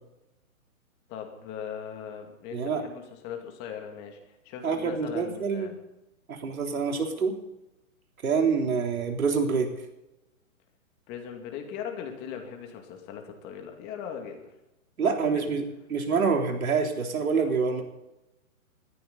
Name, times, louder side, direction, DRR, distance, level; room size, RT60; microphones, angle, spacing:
voice 1, 1.1-5.8 11.1-14.5 15.0-15.5, left 7 dB, 25° left, 4 dB, 2.4 m, -39 dB
voice 2, 2.5-2.8 4.6-5.7 6.3-7.3 8.2-9.7 15.0-15.6 15.9-17.8, right 5 dB, 75° right, 3 dB, 3.7 m, -26 dB
19.5 x 14.0 x 4.1 m, 0.93 s
hypercardioid pair, 145°, 42 cm